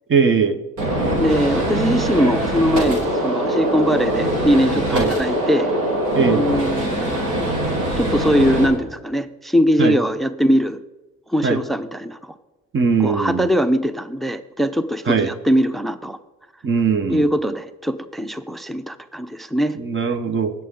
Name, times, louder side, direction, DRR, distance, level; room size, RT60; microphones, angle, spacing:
voice 1, 0.1-0.6 4.9-5.1 6.1-6.4 9.8-10.0 11.4-11.6 12.7-13.5 15.1-15.3 16.6-17.3 19.7-20.5, right 5 dB, 40° right, 10 dB, 1.2 m, -19 dB
voice 2, 0.8-5.7 6.2-7.5 8.0-10.8 11.3-12.3 13.0-16.2 17.1-19.8, equal, ahead, 12 dB, 0.6 m, -21 dB
Gunshot gunfire, 0.8-8.7, right 1 dB, 90° right, 5.1 m, -22 dB
19.5 x 7.6 x 3.9 m, 1.1 s
cardioid pair, 90°, 30 cm